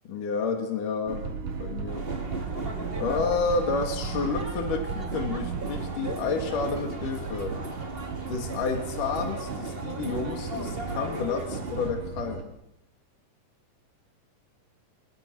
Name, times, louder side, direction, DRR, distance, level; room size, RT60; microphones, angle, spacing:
voice 1, 0.1-1.2 1.6-2.0 3.0-7.6 8.3-12.5, left 4 dB, 75° left, 4 dB, 3.9 m, -30 dB
sound 1, 1.1-12.4, right 5 dB, 75° right, 3.3 m, -35 dB
sound 2, 1.9-11.9, right 2 dB, 20° right, 2.2 m, -37 dB
29.0 x 20.5 x 6.3 m, 0.86 s
omnidirectional pair, 3.8 m